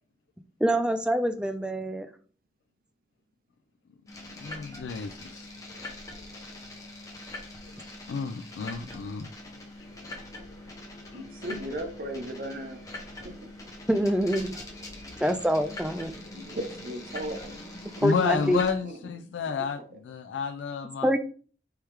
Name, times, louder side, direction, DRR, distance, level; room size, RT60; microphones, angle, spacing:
voice 1, 0.6-2.1 13.9-14.5 15.2-16.1 18.0-18.6 21.0-21.2, equal, 5° right, 0.4 m, -25 dB
sound 1, 4.1-18.7, left 2 dB, 20° left, 1.0 m, -43 dB
voice 2, 4.3-5.5 5.7-5.8 8.1-9.3 10.4-10.6 11.1-11.2 18.0-21.1, left 5 dB, 90° left, 0.4 m, -31 dB
voice 3, 11.1-12.8 13.2-13.4 16.3-17.5 18.8-18.9, right 1 dB, 55° right, 0.7 m, -36 dB
4.6 x 3.5 x 3.2 m
head